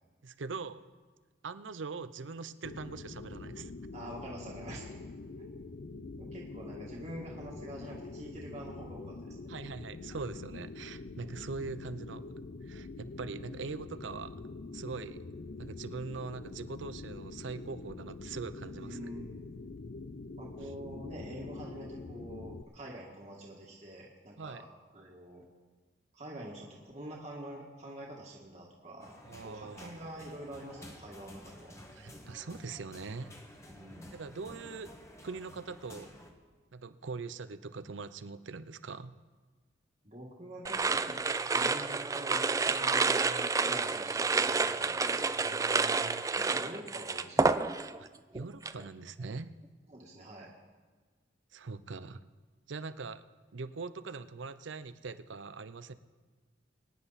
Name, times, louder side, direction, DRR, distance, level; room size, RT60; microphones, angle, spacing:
voice 1, 0.2-0.8 1.4-3.7 9.5-14.4 14.7-15.2 15.6-19.0 24.4-24.6 29.3-29.9 32.0-33.4 34.1-35.0 35.2-36.3 36.7-39.1 43.7-44.0 45.4-46.3 48.0-48.1 48.3-49.6 51.5-52.2 52.7-53.2 53.5-55.9, right 4 dB, 80° right, 13 dB, 0.6 m, -42 dB
sound 1, 2.6-22.6, left 3 dB, 55° left, 0.5 m, -45 dB
voice 2, 3.9-5.0 6.2-9.5 18.7-19.3 20.4-24.7 24.9-25.4 26.1-29.1 29.4-31.7 33.6-34.1 40.0-41.2 41.5-45.4 46.3-47.6 49.9-50.5, right 1 dB, 40° right, -3 dB, 1.8 m, -46 dB
sound 2, 29.0-36.3, left 1 dB, 15° left, 1.3 m, -52 dB
sound 3, 40.6-48.1 48.3-48.8, right 4 dB, 15° right, 0.3 m, -29 dB
23.0 x 10.0 x 4.1 m, 1.4 s
head